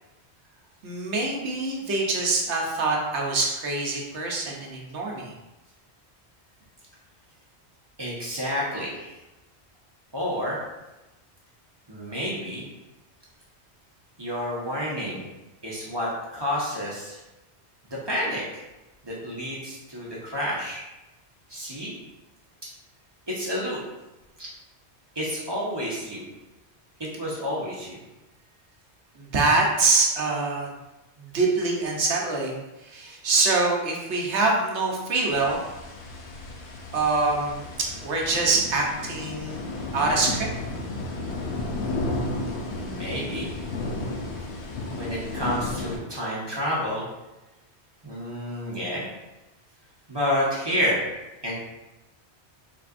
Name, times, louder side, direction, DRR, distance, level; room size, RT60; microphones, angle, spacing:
voice 1, 0.8-5.3 29.2-30.7 31.2-35.6 36.9-37.7 38.0-39.6 39.9-40.5, right 3 dB, 80° right, -1 dB, 1.1 m, -25 dB
voice 2, 8.0-9.2 10.1-10.6 11.9-12.6 14.2-15.2 15.6-17.2 18.1-18.6 19.0-20.8 21.5-21.9 23.3-23.8 24.4-24.5 25.1-26.3 27.0-28.0 42.7-43.5 44.9-47.1 48.0-49.0 50.1-51.1 51.4-51.5, equal, 25° right, -6 dB, 1.1 m, -29 dB
sound 1, 35.3-46.0, left 2 dB, 80° left, 1.0 m, -33 dB
4.1 x 3.8 x 2.5 m, 1.0 s
omnidirectional pair, 1.1 m